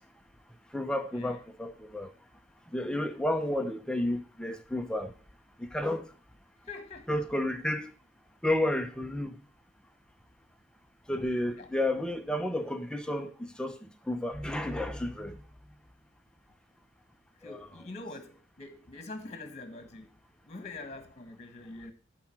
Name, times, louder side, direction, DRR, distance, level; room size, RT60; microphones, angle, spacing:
voice 1, 0.7-2.1 2.7-5.1 5.7-6.1 7.1-7.9 8.4-9.4 11.1-15.4 17.4-17.6, left 1 dB, 5° left, 0.8 m, -31 dB
voice 2, 6.6-7.1 11.6-11.7 17.4-20.2 20.4-21.9, left 2 dB, 40° left, 1.6 m, -44 dB
11.5 x 4.7 x 4.5 m
head